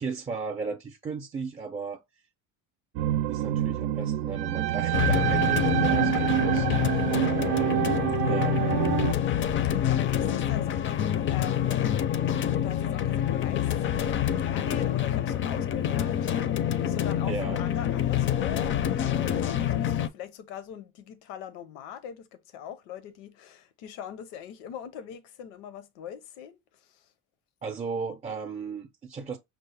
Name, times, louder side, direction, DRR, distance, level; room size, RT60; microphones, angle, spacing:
voice 1, 0.0-2.0 3.3-7.0 7.3-7.8 8.3-8.6 17.2-17.7 27.6-29.4, right 5 dB, 20° right, 0.5 m, -35 dB
sound 1, 3.0-9.1, right 13 dB, 85° right, 0.5 m, -26 dB
sound 2, 4.9-20.1, left 10 dB, 40° left, 0.4 m, -27 dB
voice 2, 7.2-7.7 9.1-12.0 12.6-27.1, left 9 dB, 90° left, 0.7 m, -42 dB
5.7 x 2.0 x 3.3 m
cardioid pair, 110°, 32 cm